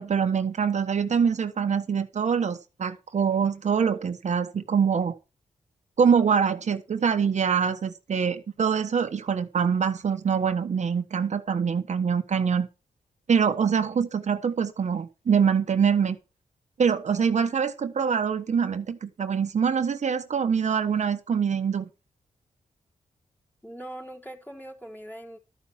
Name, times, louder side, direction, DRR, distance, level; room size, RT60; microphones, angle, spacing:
voice 1, 0.0-5.1 6.0-12.7 13.3-16.2 16.8-21.9, right 6 dB, 60° right, 1.2 m, -24 dB
voice 2, 23.6-25.4, right 1 dB, 15° left, 4.0 m, -41 dB
13.0 x 5.6 x 7.3 m
cardioid pair, 60°, 13 cm